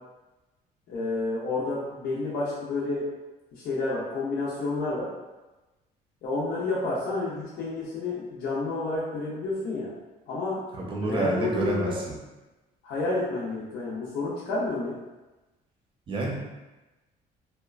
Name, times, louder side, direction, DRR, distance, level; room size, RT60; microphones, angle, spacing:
voice 1, 0.9-3.0 3.5-5.1 6.2-9.9 10.3-10.6 11.1-12.0 12.8-15.0, left 3 dB, 70° left, -7 dB, 0.6 m, -30 dB
voice 2, 10.7-12.0 16.1-16.4, right 2 dB, 30° right, -2 dB, 0.7 m, -28 dB
2.9 x 2.1 x 2.4 m, 1.1 s
cardioid pair, 110°, 17 cm